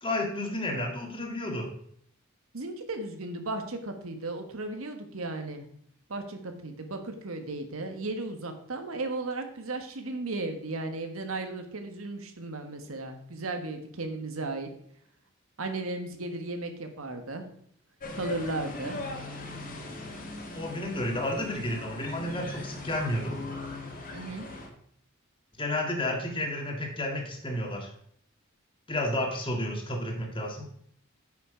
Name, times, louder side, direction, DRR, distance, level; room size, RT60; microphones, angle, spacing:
voice 1, 0.0-1.7 20.5-23.4 25.6-27.9 28.9-30.7, left 1 dB, 25° left, 1 dB, 1.9 m, -31 dB
voice 2, 2.5-5.7 6.1-14.7 15.6-17.4 18.1-19.0 24.1-24.5, right 2 dB, 85° right, 6 dB, 1.4 m, -35 dB
sound 1, 18.0-24.7, left 2 dB, 40° left, 2.0 m, -39 dB
9.8 x 6.0 x 5.0 m, 0.66 s
head